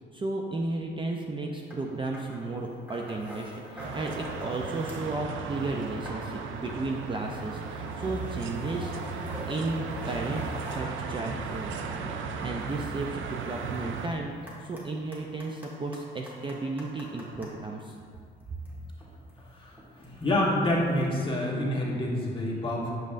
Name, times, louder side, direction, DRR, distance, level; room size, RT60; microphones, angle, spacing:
voice 1, 0.1-14.3 14.6-18.0, right 2 dB, 25° right, 1 dB, 0.4 m, -34 dB
sound 1, 1.7-1.8 2.1-5.2 5.5-17.5 18.3-21.1, equal, 10° right, 1.4 m, -46 dB
sound 2, 3.8-14.1, right 5 dB, 80° right, 0.5 m, -36 dB
voice 2, 19.5-22.9, left 1 dB, 25° left, -5 dB, 1.4 m, -28 dB
7.4 x 5.3 x 2.5 m, 2.2 s
cardioid pair, 90°, 20 cm